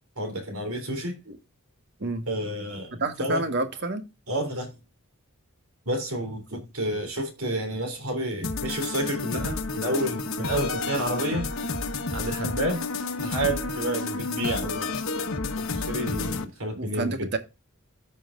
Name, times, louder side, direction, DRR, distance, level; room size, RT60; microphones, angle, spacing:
voice 1, 0.2-1.2 2.3-3.5 4.3-4.8 5.9-11.5 12.1-12.9 13.2-15.0 15.6-17.3, right 1 dB, 75° right, 3.5 m, -30 dB
voice 2, 3.0-4.0 16.7-17.4, right 2 dB, 55° right, 1.5 m, -29 dB
sound 1, 8.4-16.4, left 3 dB, 70° left, 1.2 m, -30 dB
13.5 x 5.6 x 2.5 m
head